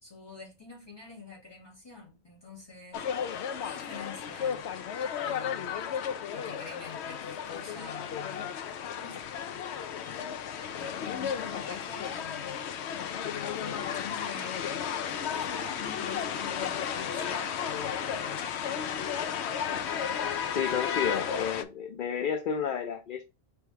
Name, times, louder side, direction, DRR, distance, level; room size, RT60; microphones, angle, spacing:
voice 1, 0.0-3.0 3.6-4.6 5.2-5.7 6.3-8.6 9.0-9.7 10.0-10.3 10.8-12.6 13.2-14.7 15.0-18.4, left 4 dB, 25° left, 1.9 m, -46 dB
sound 1, 2.9-21.6, left 8 dB, 85° left, 0.9 m, -33 dB
voice 2, 20.5-23.2, left 8 dB, 60° left, 0.7 m, -31 dB
4.7 x 3.3 x 3.2 m
omnidirectional pair, 1.1 m